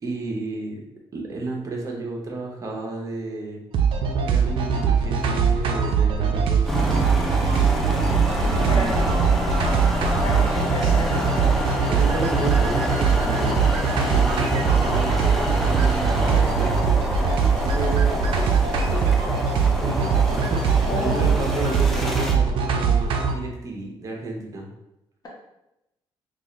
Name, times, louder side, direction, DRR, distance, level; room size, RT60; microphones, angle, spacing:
voice 1, 0.0-0.8 1.1-3.6 4.2-7.1 8.4-9.2 11.9-13.6 14.0-15.1 15.6-16.6 17.6-18.2 19.2-19.4 19.7-24.7, right 2 dB, 35° right, 0 dB, 0.8 m, -32 dB
sound 1, 3.7-23.3, right 6 dB, 70° right, 0.5 m, -21 dB
sound 2, 6.6-22.3, left 1 dB, 5° left, 0.5 m, -27 dB
voice 2, 8.5-9.0 10.2-11.2 20.9-21.3, left 1 dB, 45° left, -3 dB, 1.1 m, -30 dB
3.7 x 2.4 x 3.1 m, 0.90 s
cardioid pair, 110°, 9 cm